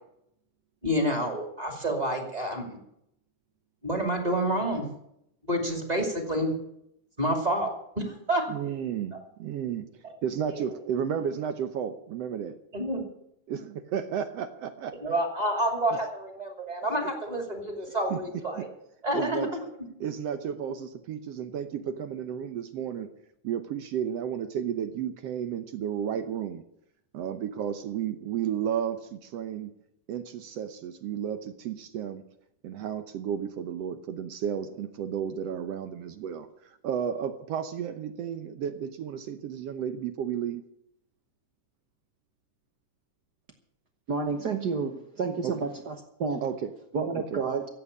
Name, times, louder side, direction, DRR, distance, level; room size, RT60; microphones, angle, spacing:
voice 1, 0.8-2.8 3.8-4.8 5.4-6.6 7.2-7.7 8.0-8.4 10.5-10.6 12.7-13.0 15.0-18.7 19.0-19.6, right 1 dB, 15° right, 3 dB, 2.3 m, -28 dB
voice 2, 8.5-9.9 10.2-12.6 13.5-14.9 18.1-18.2 18.5-18.6 19.1-19.5 20.0-23.1 23.4-26.6 27.1-29.7 30.1-32.2 32.6-36.5 36.8-40.6 45.4-45.5 46.4-46.7 47.1-47.4, right 8 dB, 70° right, 10 dB, 1.6 m, -32 dB
voice 3, 44.1-45.9 46.2-46.4 46.9-47.7, right 4 dB, 85° right, 6 dB, 0.8 m, -30 dB
14.5 x 8.5 x 8.4 m, 0.77 s
omnidirectional pair, 3.6 m